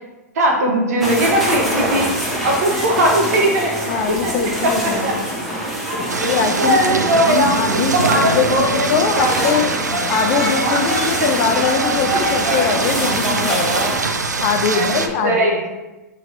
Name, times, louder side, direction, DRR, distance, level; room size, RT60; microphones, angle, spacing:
voice 1, 0.3-2.1 2.4-3.9 4.2-5.1 5.5-6.3 6.6-9.7 11.2-11.3 14.7-15.7, right 1 dB, 60° right, 1 dB, 0.9 m, -19 dB
sound 1, 1.0-14.0, right 1 dB, ahead, 0.9 m, -24 dB
voice 2, 3.9-5.1 6.2-6.8 7.3-7.9 8.3-9.6 10.1-13.7 14.4-15.7, left 6 dB, 35° left, 6 dB, 0.4 m, -21 dB
sound 2, 6.1-15.1, right 4 dB, 85° right, 0.4 m, -23 dB
2.9 x 2.8 x 3.8 m, 1.1 s
figure-of-eight pair, 105°, 9 cm